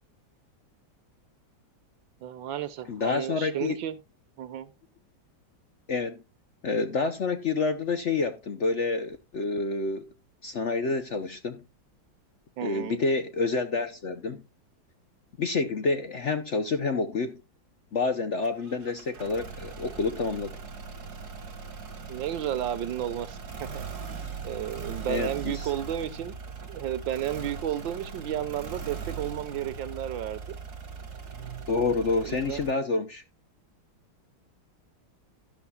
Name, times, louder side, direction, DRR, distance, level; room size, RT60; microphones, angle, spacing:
voice 1, 2.2-4.0 4.4-4.7 12.6-13.0 22.1-23.9 24.4-26.4 26.7-30.6 32.1-32.7, right 11 dB, 75° right, 1.6 m, -33 dB
voice 2, 2.9-3.8 5.9-6.2 6.6-10.1 10.4-11.6 12.6-14.4 15.4-17.4 17.9-20.6 25.1-25.7 31.7-33.2, left 4 dB, 55° left, 0.8 m, -28 dB
sound 1, 18.4-32.7, right 5 dB, 55° right, 2.3 m, -40 dB
12.5 x 11.5 x 2.3 m
omnidirectional pair, 2.1 m